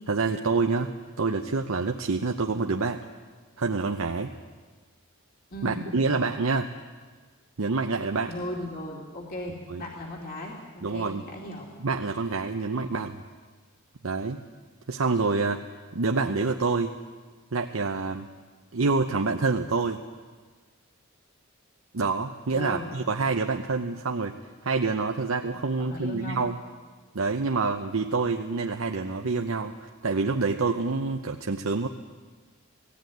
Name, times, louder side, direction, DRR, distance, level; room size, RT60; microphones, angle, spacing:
voice 1, 0.1-3.1 3.6-4.3 5.6-6.7 7.6-8.3 9.7-9.8 10.8-11.2 11.8-13.2 14.0-14.4 14.9-15.6 15.9-16.9 17.5-18.3 18.7-20.0 21.9-24.3 24.6-26.6 27.1-31.9, right 4 dB, 75° right, 3 dB, 0.8 m, -27 dB
voice 2, 5.5-5.8 8.3-11.7 22.5-22.9 25.8-26.4, left 1 dB, 45° left, -1 dB, 2.6 m, -37 dB
19.0 x 15.5 x 9.3 m, 1.5 s
head